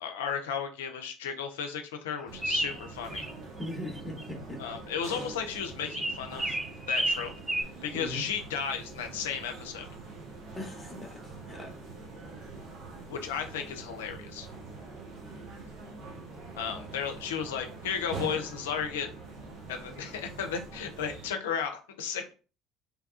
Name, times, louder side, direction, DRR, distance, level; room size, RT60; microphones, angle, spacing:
voice 1, 0.0-3.2 4.6-6.6 6.9-7.3 7.8-9.9 13.1-14.5 16.6-19.1 19.7-22.3, left 7 dB, 80° left, 6 dB, 0.4 m, -34 dB
sound 1, 2.3-21.3, right 3 dB, 60° right, 0.9 m, -44 dB
sound 2, 2.4-3.3 3.6-4.2 5.9-7.6, right 1 dB, 10° right, 0.3 m, -31 dB
voice 2, 3.6-4.6 7.9-8.2 10.5-11.7, left 1 dB, 20° left, 0 dB, 0.9 m, -39 dB
3.0 x 2.3 x 2.4 m, 0.35 s
hypercardioid pair, 60°, 0 cm